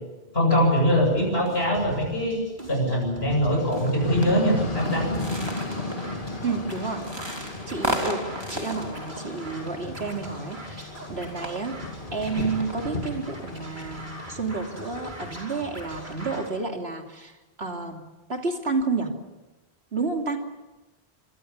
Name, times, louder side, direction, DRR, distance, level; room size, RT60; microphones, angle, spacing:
voice 1, 0.3-2.4 2.7-5.1, equal, 75° left, 1 dB, 8.1 m, -22 dB
Scratching (performance technique), 0.6-16.5, right 1 dB, 50° right, 5.9 m, -42 dB
sound 1, 3.5-12.9, right 1 dB, 25° right, 3.1 m, -36 dB
sound 2, 4.0-15.4, left 3 dB, 55° left, 2.2 m, -35 dB
voice 2, 6.4-7.0 7.7-11.8 12.1-18.0 18.3-19.1 19.9-20.4, right 4 dB, 80° right, 3 dB, 3.1 m, -30 dB
25.5 x 24.0 x 7.3 m, 1.1 s
omnidirectional pair, 1.0 m